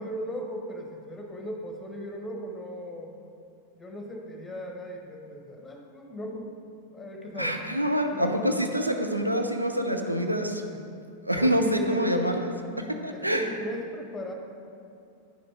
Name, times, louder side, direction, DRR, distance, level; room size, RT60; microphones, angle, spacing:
voice 1, 0.0-3.1 3.7-6.5 6.9-7.6 8.1-8.3 10.6-10.8 11.4-12.4 13.1-14.3, equal, 15° left, 2 dB, 1.2 m, -37 dB
voice 2, 7.4-10.6 11.2-12.5 12.8-13.5, equal, 85° right, 5 dB, 0.6 m, -26 dB
10.0 x 5.9 x 4.8 m, 2.5 s
figure-of-eight pair, 90°, 0 cm